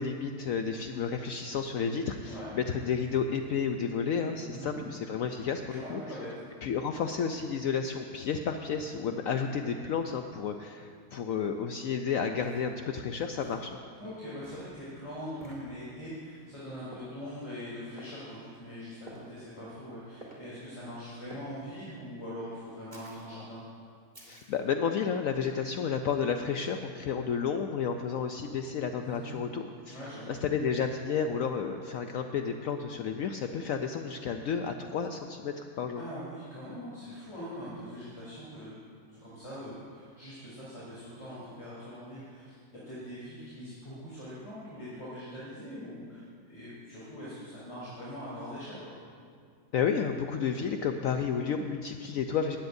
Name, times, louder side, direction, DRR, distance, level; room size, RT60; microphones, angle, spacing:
voice 1, 0.0-6.0 6.6-13.8 24.2-30.0 30.3-36.0 49.7-52.6, left 6 dB, 70° left, 6 dB, 0.9 m, -31 dB
voice 2, 2.2-2.6 4.5-4.8 5.7-6.3 14.0-23.6 29.0-29.3 29.9-30.3 36.0-38.8 39.2-42.6 42.9-49.0, equal, 20° left, -10 dB, 3.6 m, -42 dB
sound 1, 11.7-11.8 12.4-12.7 13.4-13.7 14.4-14.7 15.4-15.6 16.9-17.2 18.0-18.2 19.1-19.4 20.2-20.4 21.3-21.5 22.9-23.3 24.1-24.6, right 1 dB, 25° right, 2.6 m, -50 dB
19.0 x 16.0 x 2.7 m, 2.2 s
omnidirectional pair, 1.7 m